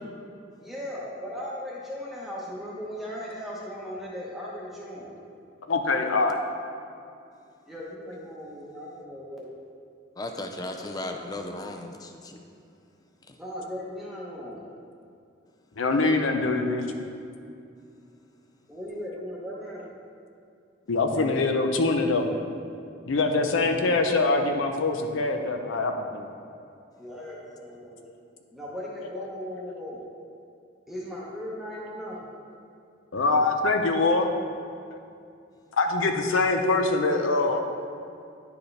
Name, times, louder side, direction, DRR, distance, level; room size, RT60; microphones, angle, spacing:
voice 1, 0.6-5.1 7.6-9.5 10.8-11.0 13.4-14.6 18.7-19.9 27.0-28.0 28.5-30.0 30.9-32.2, equal, ahead, -6 dB, 0.8 m, -37 dB
voice 2, 5.7-6.4 15.8-16.8 20.9-22.3 23.1-26.3 29.2-29.3 33.1-34.3 35.8-37.6, left 3 dB, 80° left, 4 dB, 0.6 m, -24 dB
voice 3, 10.2-12.4 13.3-13.4, left 2 dB, 20° left, 4 dB, 0.3 m, -36 dB
10.0 x 4.7 x 3.2 m, 2.5 s
head